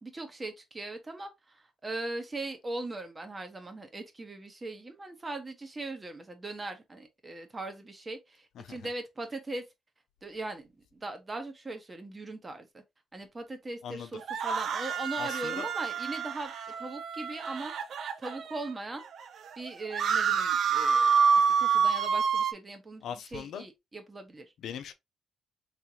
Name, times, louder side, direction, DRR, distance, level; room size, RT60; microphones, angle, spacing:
voice 1, 0.0-9.6 10.2-12.8 13.1-16.5 16.8-17.7 18.2-19.0 19.5-24.4, right 2 dB, 25° right, 1.2 m, -40 dB
voice 2, 8.5-8.9 13.8-14.4 15.2-15.7 23.0-23.6 24.6-24.9, left 8 dB, 75° left, 0.6 m, -41 dB
sound 1, 14.2-18.7 19.2-19.3 19.5-22.5, right 6 dB, 65° right, 0.5 m, -27 dB
3.6 x 3.4 x 2.8 m
cardioid pair, 95°, 0 cm